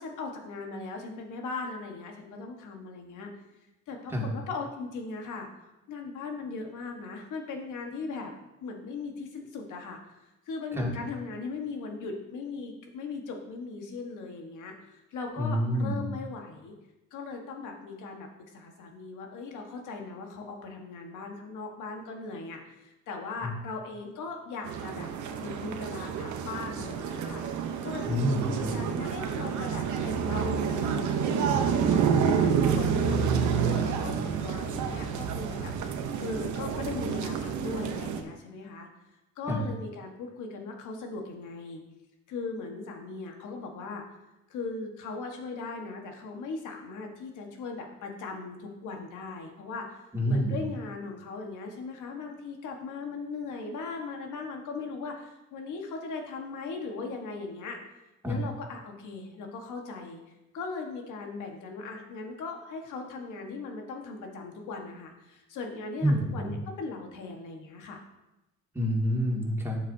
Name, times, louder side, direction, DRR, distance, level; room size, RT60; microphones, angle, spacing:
voice 1, 0.0-3.3 3.9-8.3 8.6-10.0 10.5-16.7 17.1-18.3 18.5-25.1 25.4-27.4 27.8-35.9 36.2-38.9 39.4-41.8 42.3-44.0 44.5-57.8 58.2-60.2 60.5-68.0, left 4 dB, 80° left, 2 dB, 1.5 m, -39 dB
voice 2, 15.4-16.0 23.4-23.5 28.1-28.8 39.5-39.6 50.1-50.6 58.2-58.4 66.0-66.5 68.7-69.8, equal, 10° right, -3 dB, 2.3 m, -27 dB
sound 1, 24.6-38.2, right 7 dB, 75° right, 0.9 m, -29 dB
9.8 x 7.5 x 2.8 m, 0.96 s
cardioid pair, 90°, 30 cm